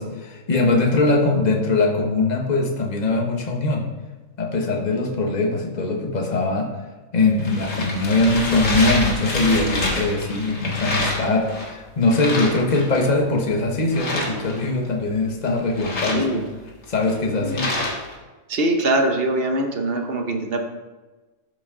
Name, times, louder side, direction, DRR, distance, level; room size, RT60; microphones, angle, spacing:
voice 1, 0.0-3.9 4.4-6.7 7.1-16.4 16.9-17.7, left 2 dB, 30° left, 1 dB, 1.2 m, -21 dB
sound 1, 7.2-11.7 12.0-13.1 13.9-14.9 15.5-18.1, left 2 dB, 65° left, 2.1 m, -27 dB
voice 2, 18.5-20.6, right 1 dB, 50° right, 5 dB, 1.0 m, -22 dB
12.5 x 5.5 x 3.8 m, 1.2 s
omnidirectional pair, 1.5 m